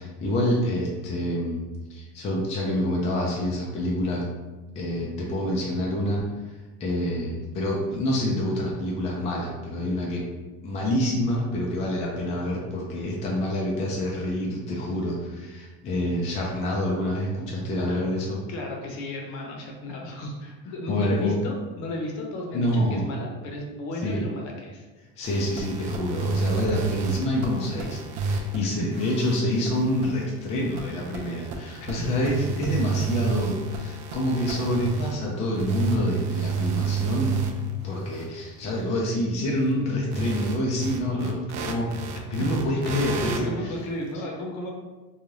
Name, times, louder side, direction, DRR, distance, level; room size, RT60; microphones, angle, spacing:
voice 1, 0.0-1.6 1.9-4.2 4.7-6.5 6.8-10.2 10.6-18.4 20.9-21.4 22.5-23.1 24.0-24.2 25.2-37.4 37.8-41.9 42.3-43.7, left 1 dB, 20° left, -3 dB, 0.3 m, -27 dB
voice 2, 14.7-15.0 17.7-18.0 18.5-24.9 28.8-29.0 31.8-32.1 42.4-42.6 43.2-44.7, left 1 dB, 55° left, 0 dB, 0.8 m, -34 dB
sound 1, 25.2-28.6 28.9-35.2 35.6-37.7 38.1-38.2 40.1-43.4, right 5 dB, 55° right, 0.5 m, -30 dB
2.5 x 2.3 x 3.1 m, 1.2 s
cardioid pair, 135°, 34 cm